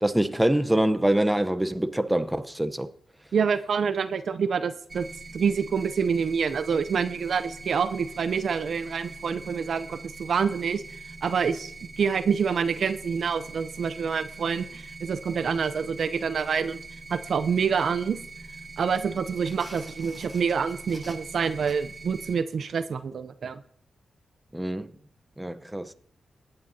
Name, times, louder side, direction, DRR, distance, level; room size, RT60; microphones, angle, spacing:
voice 1, 0.0-2.9 24.5-24.9 25.4-25.9, right 1 dB, 10° right, 0.7 m, -25 dB
voice 2, 3.3-5.1 5.3-10.8 11.2-16.8 17.1-18.2 18.8-23.6, right 6 dB, 70° right, 0.6 m, -27 dB
sound 1, 4.9-22.3, right 3 dB, 25° right, 2.7 m, -43 dB
sound 2, 19.3-22.1, left 1 dB, 30° left, 6.0 m, -49 dB
18.5 x 8.9 x 2.8 m
cardioid pair, 65°, 0 cm